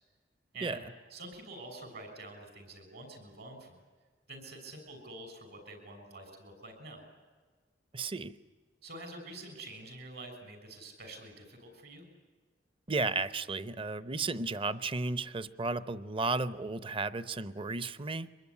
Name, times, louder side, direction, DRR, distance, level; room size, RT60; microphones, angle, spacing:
voice 1, 0.5-3.8 4.3-7.1 8.8-12.0, right 2 dB, 60° right, 6 dB, 6.7 m, -47 dB
voice 2, 7.9-8.3 12.9-18.3, right 3 dB, 30° right, 14 dB, 0.8 m, -34 dB
24.5 x 21.5 x 9.9 m, 1.5 s
head